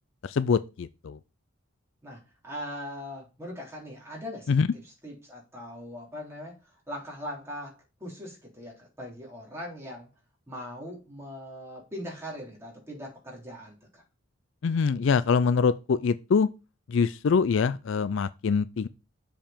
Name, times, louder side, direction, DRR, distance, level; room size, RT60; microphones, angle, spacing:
voice 1, 0.2-1.2 4.5-4.7 14.6-16.5 16.9-18.9, left 5 dB, 60° left, 0.4 m, -24 dB
voice 2, 2.0-4.5 5.0-10.1 10.5-14.0, equal, 15° right, 3.6 m, -40 dB
7.3 x 5.1 x 5.1 m
head